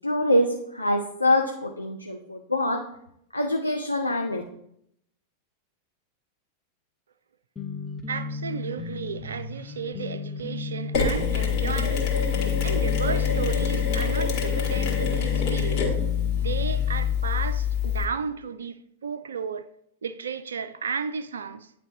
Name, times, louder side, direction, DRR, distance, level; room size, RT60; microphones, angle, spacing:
voice 1, 0.0-2.8 3.3-4.4, left 1 dB, 85° left, 0.6 m, -24 dB
sound 1, 7.6-17.2, left 3 dB, 15° left, 0.7 m, -35 dB
voice 2, 8.1-12.1 12.6-15.9 16.4-19.7 20.0-21.7, right 6 dB, 70° right, 0.3 m, -33 dB
Mechanisms, 10.9-18.1, left 7 dB, 45° left, 1.8 m, -25 dB
9.4 x 3.3 x 3.9 m
figure-of-eight pair, 90°, 0 cm